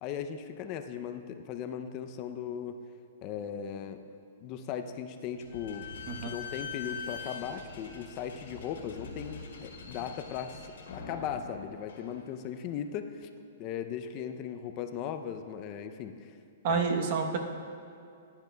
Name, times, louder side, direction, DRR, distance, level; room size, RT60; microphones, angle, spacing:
voice 1, 0.0-2.8 3.2-4.0 4.4-5.9 6.2-10.6 10.9-13.3 13.6-16.3 16.7-16.9, left 8 dB, 30° left, 8 dB, 0.5 m, -38 dB
Slam / Squeak, 5.4-12.7, left 5 dB, 80° left, 2.2 m, -44 dB
voice 2, 16.6-17.4, right 5 dB, 40° right, 4 dB, 0.9 m, -28 dB
15.0 x 10.5 x 2.2 m, 2.4 s
hypercardioid pair, 165°, 0 cm